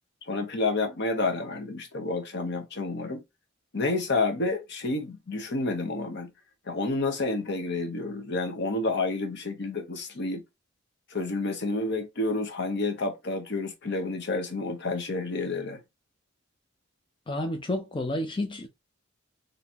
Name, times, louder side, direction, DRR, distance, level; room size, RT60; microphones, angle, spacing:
voice 1, 0.2-3.2 3.7-6.3 6.7-10.4 11.1-15.8, left 3 dB, 60° left, 1.0 m, -29 dB
voice 2, 17.3-18.7, left 1 dB, 25° left, 0.6 m, -30 dB
4.2 x 3.3 x 2.8 m
head